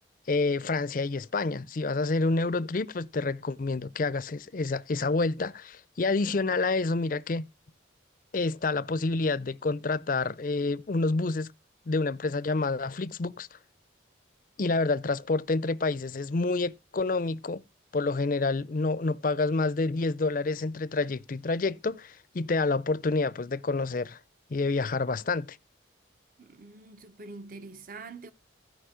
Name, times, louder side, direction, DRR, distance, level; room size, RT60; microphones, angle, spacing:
voice 1, 0.3-7.5 8.3-11.5 11.9-13.5 14.6-17.6 17.9-24.2 24.5-25.6, left 3 dB, 45° left, 0.5 m, -28 dB
voice 2, 26.4-28.3, right 3 dB, 45° right, 0.7 m, -45 dB
15.5 x 5.2 x 5.0 m
head